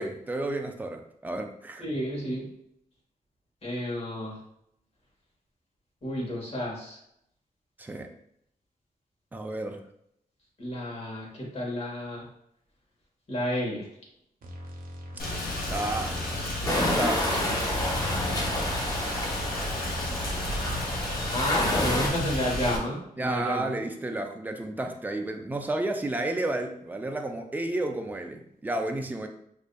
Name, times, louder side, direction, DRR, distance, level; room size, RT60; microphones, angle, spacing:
voice 1, 0.0-1.8 7.8-8.1 9.3-9.8 15.7-16.3 16.7-17.4 23.2-29.3, right 2 dB, 10° right, 4 dB, 0.3 m, -32 dB
voice 2, 1.8-2.5 3.6-4.4 6.0-7.0 10.6-12.3 13.3-13.9 21.3-23.8, equal, 45° left, -2 dB, 1.2 m, -31 dB
sound 1, 14.4-22.1, right 1 dB, 75° right, 0.7 m, -42 dB
Rain, 15.2-22.8, left 1 dB, 80° left, 0.8 m, -32 dB
sound 2, 16.6-22.1, left 1 dB, 25° left, 0.8 m, -29 dB
5.1 x 2.5 x 2.2 m, 0.74 s
wide cardioid pair, 140°, 15 cm